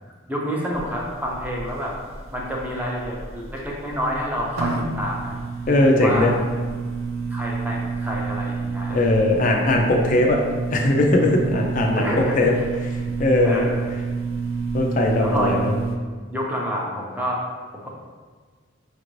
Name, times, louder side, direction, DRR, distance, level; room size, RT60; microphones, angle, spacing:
voice 1, 0.3-1.9 2.3-5.3 6.0-6.3 7.3-9.0 11.9-12.4 13.4-13.9 15.2-15.6 16.3-17.4 17.8-17.9, equal, 10° right, -3 dB, 0.6 m, -28 dB
sound 1, 0.7-16.0, right 4 dB, 80° right, 0.5 m, -29 dB
voice 2, 5.7-6.3 8.9-10.4 10.7-12.5 12.8-12.9 13.2-13.7 14.7-15.8, left 1 dB, 40° left, 1 dB, 0.4 m, -19 dB
5.2 x 2.5 x 3.0 m, 1.5 s
head